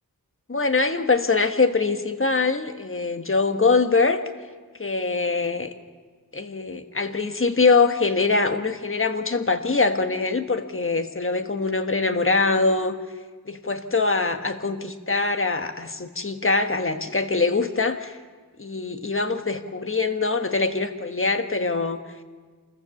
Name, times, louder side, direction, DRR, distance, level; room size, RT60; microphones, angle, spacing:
voice 1, 0.5-4.2 4.8-5.7 6.3-13.0 13.5-18.2 18.6-22.0, left 3 dB, 35° left, 7 dB, 1.3 m, -23 dB
27.5 x 14.5 x 7.1 m, 1.5 s
wide cardioid pair, 85°, 37 cm